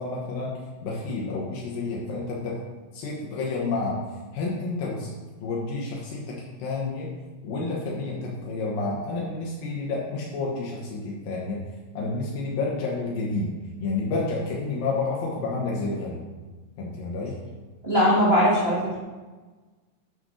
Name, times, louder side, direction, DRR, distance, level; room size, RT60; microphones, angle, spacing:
voice 1, 0.0-2.6 2.9-4.0 4.3-5.1 5.4-7.1 7.4-11.7 11.9-16.2 16.8-17.4, left 3 dB, 80° left, -4 dB, 3.0 m, -30 dB
voice 2, 17.8-19.0, equal, 30° right, -6 dB, 1.1 m, -20 dB
7.9 x 6.5 x 6.4 m, 1.3 s
omnidirectional pair, 3.9 m